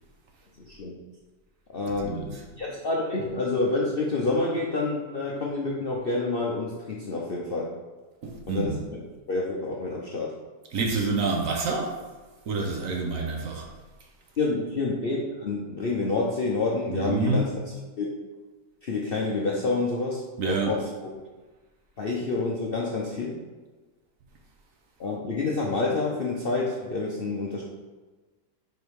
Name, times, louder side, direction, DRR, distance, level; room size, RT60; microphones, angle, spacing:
voice 1, 0.6-0.9 1.7-2.2 2.6-7.7 8.5-9.0 9.3-10.3 14.4-18.1 18.8-20.8 21.1-21.2 22.0-23.4 25.0-27.6, left 3 dB, 55° left, -3 dB, 0.6 m, -28 dB
voice 2, 2.0-2.4 8.2-8.8 10.7-12.0 12.5-13.7 16.9-17.5 20.4-20.7, right 3 dB, 60° right, 1 dB, 1.1 m, -27 dB
5.2 x 4.6 x 4.7 m, 1.3 s
omnidirectional pair, 1.8 m